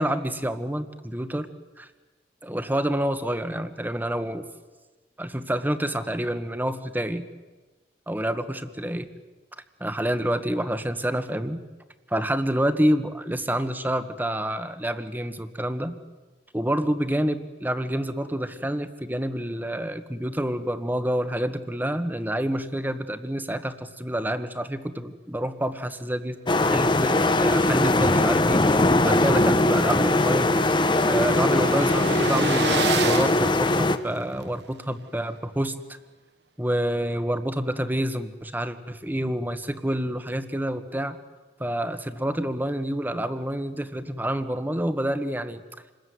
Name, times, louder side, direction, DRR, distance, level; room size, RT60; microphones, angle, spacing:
voice 1, 0.0-1.5 1.8-1.9 2.4-4.4 5.2-7.2 8.1-9.1 9.8-11.6 12.1-16.0 16.5-30.5 31.0-36.0 36.6-41.2 41.6-45.6, right 1 dB, 10° right, 10 dB, 1.5 m, -28 dB
sound 1, 26.5-34.0, left 2 dB, 25° left, 1.0 m, -21 dB
sound 2, 29.7-34.4, right 6 dB, 75° right, 1.0 m, -32 dB
28.0 x 21.0 x 9.6 m, 1.2 s
head